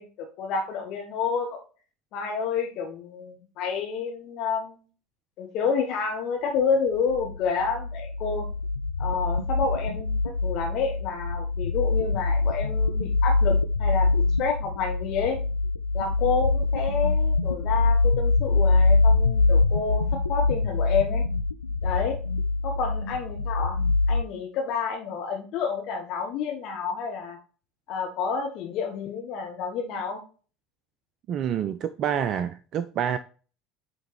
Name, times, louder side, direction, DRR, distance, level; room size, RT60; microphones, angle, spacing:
voice 1, 0.0-1.6 2.1-4.8 5.4-8.5 9.0-15.4 15.9-21.2 21.8-22.2 22.6-23.8 24.1-27.4 27.9-30.2, left 5 dB, 55° left, 1.1 m, -29 dB
sound 1, 7.1-24.2, left 3 dB, 90° left, 0.3 m, -24 dB
voice 2, 31.3-33.2, right 9 dB, 45° right, 0.4 m, -27 dB
8.6 x 3.5 x 3.1 m
figure-of-eight pair, 70°, 0 cm